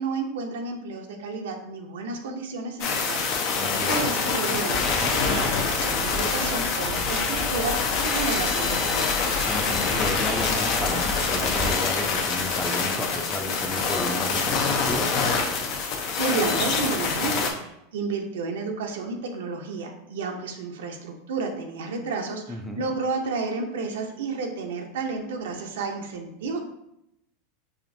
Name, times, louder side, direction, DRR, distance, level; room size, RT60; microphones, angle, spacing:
voice 1, 0.0-9.1 15.7-26.6, right 4 dB, 80° right, 3 dB, 0.6 m, -31 dB
sound 1, 2.8-17.5, left 5 dB, 55° left, 0.7 m, -25 dB
voice 2, 3.6-4.0 9.4-15.1 22.5-22.8, left 1 dB, 5° left, 2 dB, 0.5 m, -33 dB
sound 2, 4.7-11.7, left 2 dB, 40° left, 1.1 m, -32 dB
4.9 x 2.5 x 2.6 m, 0.81 s
hypercardioid pair, 110°, 0 cm